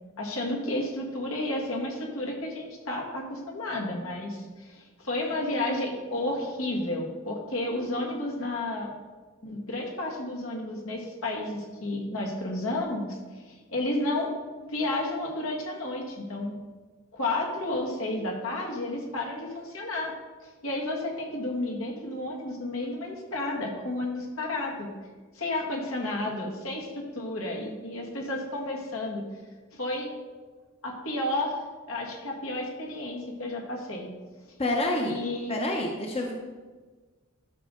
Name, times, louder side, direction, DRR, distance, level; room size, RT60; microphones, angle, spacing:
voice 1, 0.2-8.9 9.4-14.3 14.6-16.6 17.1-20.1 20.4-24.9 25.3-29.2 29.7-30.1 30.8-31.6 31.9-34.1 35.1-35.6, left 1 dB, 75° left, -1 dB, 1.9 m, -32 dB
voice 2, 34.6-35.2 35.5-36.3, left 1 dB, 30° left, 1 dB, 0.9 m, -28 dB
12.0 x 6.5 x 3.8 m, 1.4 s
head